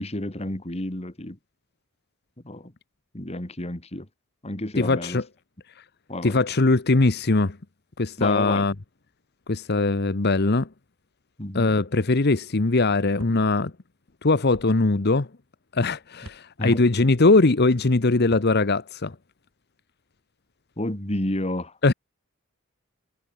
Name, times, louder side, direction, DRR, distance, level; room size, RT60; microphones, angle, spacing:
voice 1, 0.0-1.4 2.4-2.7 3.1-4.1 4.4-5.2 6.1-6.4 8.2-8.7 11.4-11.8 16.6-16.8 20.8-21.9, left 1 dB, 30° left, 2.4 m, -30 dB
voice 2, 4.8-5.2 6.2-7.6 8.0-8.7 9.5-10.7 11.5-13.7 14.2-15.3 15.7-19.1 21.8-21.9, left 3 dB, 50° left, 1.0 m, -21 dB
sound 1, 13.2-13.4 14.5-14.7 16.2-16.4 18.2-18.5, right 1 dB, 90° right, 3.5 m, -44 dB
head